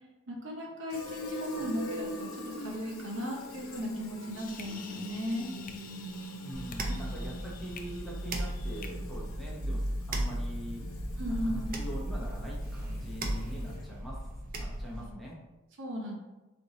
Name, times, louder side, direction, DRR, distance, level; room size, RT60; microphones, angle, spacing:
voice 1, 0.3-2.3 2.6-5.5 11.2-11.8 15.0-15.1 15.8-16.2, equal, 60° right, -1 dB, 0.9 m, -36 dB
Fill (with liquid), 0.9-14.0, equal, 75° left, 0.8 m, -43 dB
sound 1, 4.2-8.9, left 5 dB, 40° left, 0.4 m, -50 dB
voice 2, 6.4-10.8 11.3-14.2 14.6-15.4, equal, ahead, -5 dB, 0.8 m, -43 dB
sound 2, 6.5-15.1, right 1 dB, 40° right, 0.5 m, -36 dB
4.5 x 2.6 x 3.9 m, 1.0 s
head